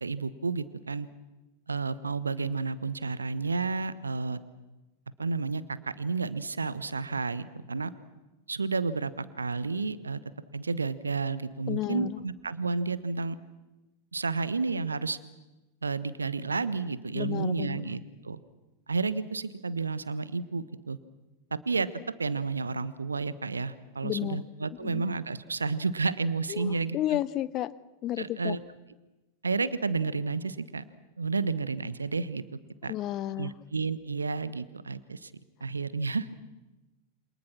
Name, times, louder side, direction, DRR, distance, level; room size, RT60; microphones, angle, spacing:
voice 1, 0.0-1.1 1.7-4.4 5.2-7.9 8.5-10.2 10.5-13.4 14.1-15.2 15.8-18.4 18.9-21.0 21.5-21.9 22.2-27.2 28.2-28.6 29.4-30.8 31.2-32.4 32.8-32.9 33.4-35.3 35.6-36.3, right 4 dB, 75° right, 16 dB, 1.2 m, -31 dB
voice 2, 11.7-12.2 17.1-17.9 24.0-24.4 24.8-25.0 26.5-27.7 28.0-28.5 32.9-33.5, left 13 dB, 35° left, 18 dB, 0.8 m, -32 dB
28.0 x 27.0 x 6.0 m, 1.1 s
figure-of-eight pair, 90°, 0 cm